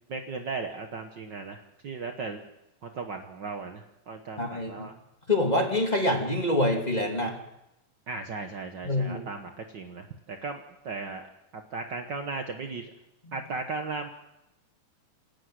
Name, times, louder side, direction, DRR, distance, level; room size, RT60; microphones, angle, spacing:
voice 1, 0.0-2.4 2.8-4.9 8.1-11.3 11.5-12.9 13.3-14.1, right 4 dB, 85° right, 5 dB, 0.9 m, -36 dB
voice 2, 4.4-4.9 5.3-7.4 8.8-9.2, left 1 dB, 15° left, 2 dB, 2.4 m, -26 dB
27.5 x 12.0 x 7.8 m, 0.90 s
omnidirectional pair, 3.9 m